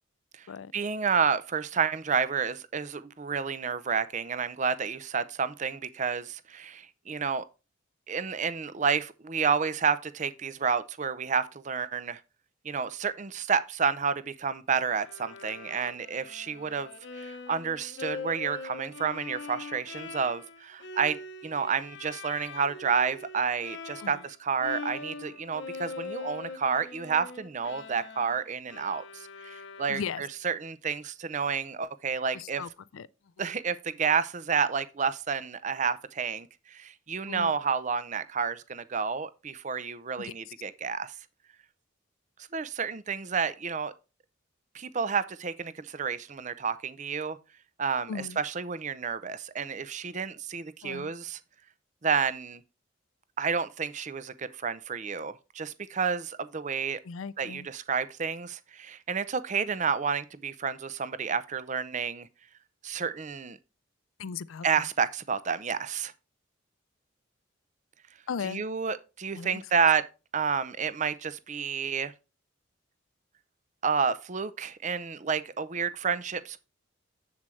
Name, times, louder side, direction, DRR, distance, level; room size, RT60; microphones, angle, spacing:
voice 1, 0.7-7.4 8.1-12.2 12.6-16.9 17.2-32.6 33.4-41.1 42.5-43.9 44.7-47.4 47.8-51.4 52.0-52.6 53.4-57.0 57.4-62.3 62.8-63.6 64.6-66.1 68.4-70.0 70.3-72.1 73.8-76.6, right 6 dB, 40° right, 0.5 m, -30 dB
Bowed string instrument, 15.0-24.3 24.6-30.4, left 3 dB, 60° left, 0.8 m, -42 dB
voice 2, 29.9-30.2 32.3-33.1 33.4-33.5 37.3-37.6 40.2-40.5 48.1-48.4 50.8-51.1 57.0-57.7 64.2-64.7 68.3-68.6 69.3-69.6, left 6 dB, 90° left, 0.5 m, -37 dB
7.6 x 7.3 x 3.2 m
head